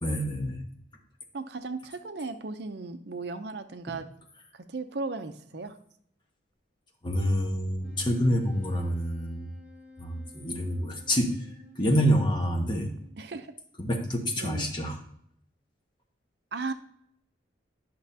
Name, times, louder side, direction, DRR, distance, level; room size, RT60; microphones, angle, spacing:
voice 1, 0.0-0.6 7.0-9.5 10.0-11.4 11.7-12.9 13.8-15.0, equal, 25° left, 1 dB, 1.3 m, -27 dB
voice 2, 1.3-4.1 4.5-5.8 13.2-13.5 14.4-14.7 16.5-16.7, right 3 dB, 65° right, 9 dB, 0.6 m, -36 dB
Wind instrument woodwind instrument, 7.8-13.5, left 1 dB, 5° right, 3.7 m, -52 dB
11.0 x 6.1 x 2.8 m, 0.68 s
head